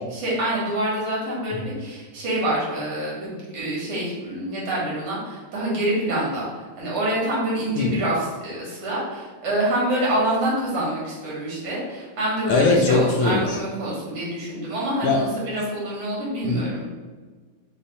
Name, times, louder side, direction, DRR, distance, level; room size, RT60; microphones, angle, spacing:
voice 1, 0.1-16.8, right 1 dB, 90° right, -5 dB, 2.4 m, -26 dB
voice 2, 12.5-13.6 15.0-15.2 16.4-16.9, left 3 dB, 80° left, 4 dB, 1.5 m, -21 dB
5.7 x 2.7 x 3.3 m, 1.4 s
omnidirectional pair, 2.3 m